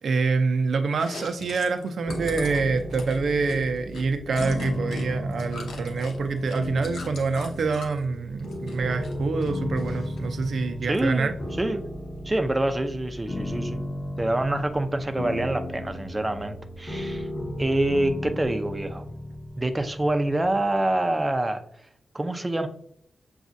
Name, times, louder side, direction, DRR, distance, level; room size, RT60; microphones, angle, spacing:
voice 1, 0.0-11.3, right 4 dB, 70° right, 7 dB, 0.5 m, -26 dB
Chewing mastication, 0.9-5.1 5.3-8.0 8.4-9.1 9.4-10.3, left 3 dB, 90° left, 0.8 m, -42 dB
sound 1, 2.1-21.0, left 1 dB, 25° left, 1.7 m, -35 dB
voice 2, 10.9-11.3 11.6-11.8 12.2-13.8 14.2-17.3 17.6-19.0 19.6-21.6 22.1-22.7, right 1 dB, 20° right, 7 dB, 0.6 m, -26 dB
7.1 x 2.4 x 2.6 m, 0.66 s
cardioid pair, 65°, 0 cm